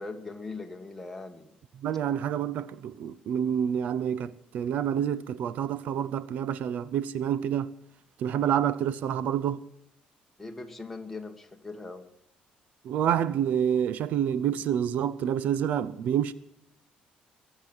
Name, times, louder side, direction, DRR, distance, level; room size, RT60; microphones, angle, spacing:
voice 1, 0.0-1.5 10.4-12.0, left 3 dB, 5° left, 1.8 m, -40 dB
voice 2, 1.8-7.7 8.2-9.6 12.8-16.3, right 9 dB, 65° right, 0.6 m, -28 dB
22.5 x 8.1 x 7.2 m
cardioid pair, 145°, 3 cm